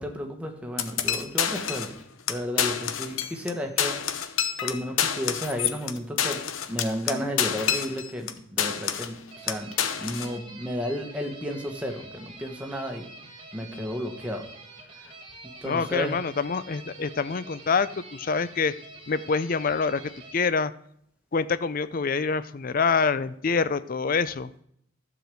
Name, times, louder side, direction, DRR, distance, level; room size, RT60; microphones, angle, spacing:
voice 1, 0.0-2.0 2.3-4.0 4.6-6.4 6.7-13.1 13.5-14.5 14.9-15.1 15.6-16.2, equal, 5° right, 3 dB, 1.3 m, -33 dB
sound 1, 0.8-2.0 2.3-2.4 2.6-3.5 3.8-8.3 8.6-9.2 9.5-10.3, left 9 dB, 80° left, 0.8 m, -28 dB
sound 2, 9.3-20.3, right 2 dB, 25° right, 1.8 m, -46 dB
voice 2, 15.6-18.7 19.1-20.7 21.3-24.5, left 5 dB, 45° left, 15 dB, 0.5 m, -26 dB
12.0 x 5.0 x 7.7 m, 0.69 s
head